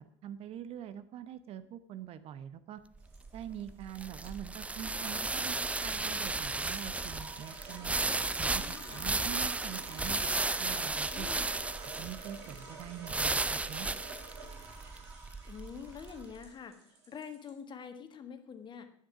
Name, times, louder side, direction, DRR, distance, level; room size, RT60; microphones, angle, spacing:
voice 1, 0.0-2.8 3.3-8.0 8.4-10.2 10.6-11.3 11.8-13.9, right 10 dB, 40° right, 14 dB, 0.8 m, -44 dB
sound 1, 3.0-16.2, right 3 dB, 10° right, 0.5 m, -34 dB
sound 2, 3.0-17.5, right 3 dB, 65° right, 3.3 m, -50 dB
voice 2, 11.1-11.5 15.4-18.9, left 7 dB, 30° left, 8 dB, 1.6 m, -46 dB
11.5 x 9.5 x 6.1 m, 0.67 s
figure-of-eight pair, 65°, 15 cm